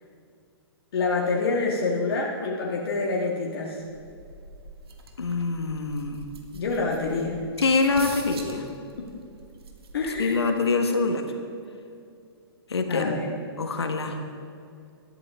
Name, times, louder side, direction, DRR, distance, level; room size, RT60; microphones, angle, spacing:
voice 1, 0.9-3.8 6.5-7.5 9.0-9.1 9.9-10.4 12.9-13.3, left 3 dB, 65° left, -2 dB, 1.9 m, -27 dB
sound 1, 3.8-10.4, right 3 dB, 70° right, 1.9 m, -44 dB
voice 2, 5.2-6.3 7.6-8.7 10.2-11.2 12.7-13.1 13.6-14.2, left 4 dB, 85° left, 5 dB, 1.6 m, -25 dB
18.5 x 13.0 x 3.7 m, 2.4 s
hypercardioid pair, 125°, 13 cm